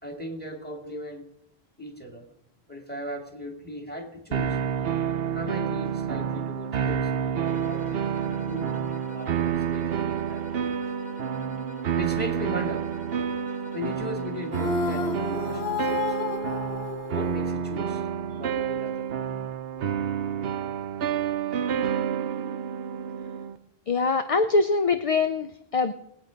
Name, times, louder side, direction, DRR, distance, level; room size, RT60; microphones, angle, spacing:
voice 1, 0.0-1.2 1.8-2.3 2.7-4.6 5.3-10.5 12.0-12.9 13.7-16.4 17.1-19.1 19.8-19.9, left 1 dB, 10° left, 2 dB, 2.2 m, -38 dB
sound 1, 4.3-23.6, right 8 dB, 70° right, 0.9 m, -29 dB
sound 2, 7.4-14.9, right 1 dB, 10° right, 1.6 m, -47 dB
sound 3, 14.5-17.9, left 7 dB, 80° left, 1.1 m, -32 dB
voice 2, 23.9-25.9, left 3 dB, 40° left, 9 dB, 0.6 m, -23 dB
20.0 x 8.8 x 5.1 m, 0.80 s
omnidirectional pair, 1.1 m